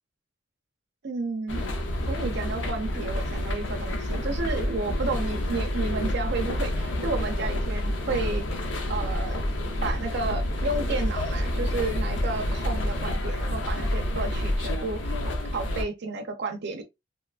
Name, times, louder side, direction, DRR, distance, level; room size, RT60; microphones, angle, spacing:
voice 1, 1.0-1.6 2.1-8.6 8.9-9.4 9.8-15.1 15.5-16.8, right 3 dB, 60° right, 0.5 m, -32 dB
sound 1, 1.5-15.8, left 1 dB, 75° left, 0.6 m, -28 dB
3.0 x 2.2 x 2.3 m
head